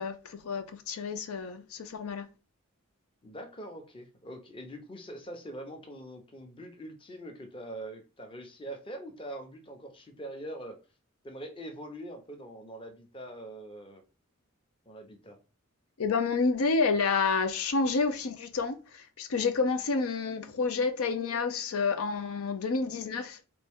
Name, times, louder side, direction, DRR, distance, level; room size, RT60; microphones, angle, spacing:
voice 1, 0.0-2.3 16.0-23.4, left 4 dB, 90° left, 0.5 m, -29 dB
voice 2, 3.2-10.8 11.2-14.0 14.9-15.4, right 1 dB, 25° left, 0.7 m, -43 dB
4.3 x 2.6 x 3.5 m
head